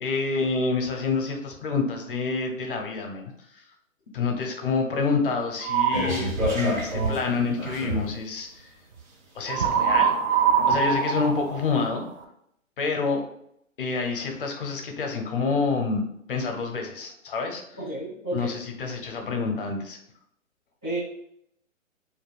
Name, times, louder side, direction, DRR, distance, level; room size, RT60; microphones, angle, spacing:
voice 1, 0.0-3.3 4.1-8.7 9.3-10.1 10.7-12.0 12.8-13.2 13.8-16.0 16.3-17.6 18.3-20.0, left 4 dB, 45° left, 3 dB, 0.5 m, -27 dB
sound 1, 5.6-6.2 9.5-12.2, right 7 dB, 70° right, 0.6 m, -23 dB
sound 2, 5.9-8.2 8.9-9.0, right 1 dB, 85° right, 1.1 m, -28 dB
voice 2, 17.8-18.6 20.8-21.0, right 1 dB, 5° right, -9 dB, 0.4 m, -31 dB
2.3 x 2.2 x 3.3 m, 0.73 s
hypercardioid pair, 145°, 39 cm